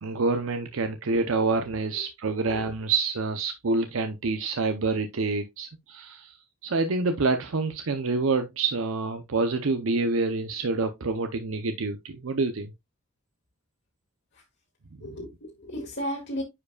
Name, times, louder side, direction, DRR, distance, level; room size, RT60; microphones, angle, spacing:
voice 1, 0.0-6.4 6.6-12.7, right 3 dB, 75° right, 0.7 m, -27 dB
voice 2, 15.0-16.4, equal, 55° left, 2.2 m, -35 dB
9.8 x 4.9 x 2.3 m
head